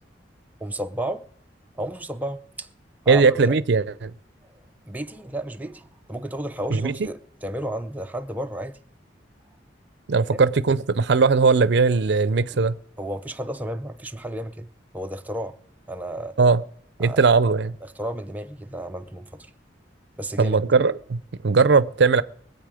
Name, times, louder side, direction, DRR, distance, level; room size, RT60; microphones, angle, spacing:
voice 1, 0.6-1.2 1.8-2.7 3.1-3.6 4.9-8.8 10.3-10.4 12.5-12.7 13.0-14.7 14.9-15.6 15.9-16.4 17.0-17.2 17.8-19.5 20.2-20.6, right 1 dB, 10° right, 0.5 m, -32 dB
voice 2, 3.1-4.1 6.7-6.9 10.1-12.8 16.4-16.6 17.0-17.7 20.4-22.2, right 4 dB, 70° right, 0.5 m, -19 dB
23.0 x 8.2 x 4.9 m
head